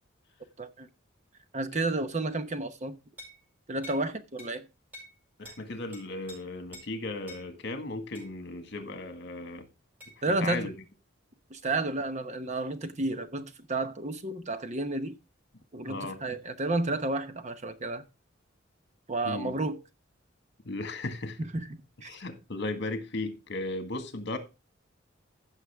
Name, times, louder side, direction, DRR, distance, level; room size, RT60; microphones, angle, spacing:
voice 1, 1.5-2.9 3.7-4.7 10.2-10.7 11.5-15.1 15.7-18.0 19.1-19.8 21.4-21.7 22.0-22.1, right 2 dB, 40° right, 0.9 m, -31 dB
sound 1, 3.2-3.4 3.8-4.0 4.4-4.5 4.9-5.1 5.4-5.6 5.9-6.4 6.7-6.9 7.3-7.4 8.1-8.3 10.0-10.2, equal, 10° right, 6.4 m, -47 dB
voice 2, 5.4-9.7 10.3-10.7 15.8-16.2 19.3-19.6 20.7-21.4 22.1-24.4, left 2 dB, 60° left, 1.8 m, -36 dB
16.0 x 6.3 x 3.5 m
head